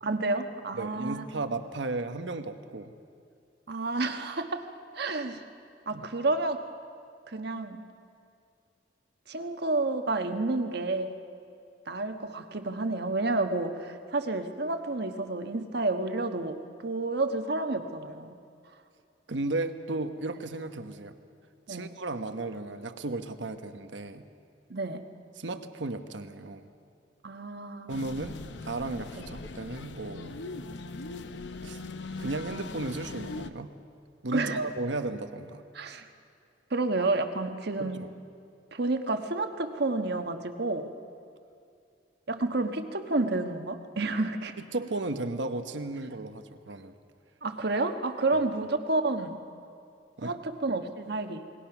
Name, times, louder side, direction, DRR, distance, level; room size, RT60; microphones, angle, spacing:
voice 1, 0.0-1.3 3.7-4.6 4.9-5.4 5.9-6.6 7.3-7.8 9.3-11.1 11.9-18.4 21.7-21.9 24.7-25.0 27.2-28.1 29.1-29.3 34.3-34.6 35.7-36.1 36.7-38.1 38.7-40.9 42.3-44.6 47.4-49.5 50.2-51.5, right 2 dB, 65° right, 7 dB, 1.3 m, -30 dB
voice 2, 0.7-2.9 5.9-6.1 19.3-21.2 21.7-24.2 25.4-26.7 27.9-28.4 28.6-30.4 31.6-31.8 32.2-33.7 34.2-35.6 37.8-38.1 44.7-46.9 50.2-50.4, right 2 dB, 80° right, 8 dB, 1.2 m, -34 dB
sound 1, 27.9-33.5, left 3 dB, 70° left, 0.8 m, -40 dB
28.0 x 20.0 x 6.0 m, 2.4 s
head